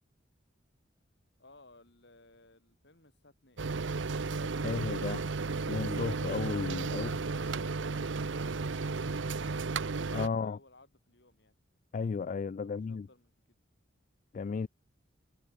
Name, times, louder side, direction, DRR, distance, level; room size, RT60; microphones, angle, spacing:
voice 1, 1.4-3.6 6.8-11.6 12.6-13.6, left 2 dB, 65° left, 6.9 m, -60 dB
sound 1, 3.6-10.3, right 4 dB, 75° right, 0.7 m, -34 dB
voice 2, 4.5-5.2 5.7-7.1 10.1-10.6 11.9-13.1 14.3-14.7, left 5 dB, 40° left, 0.3 m, -34 dB
head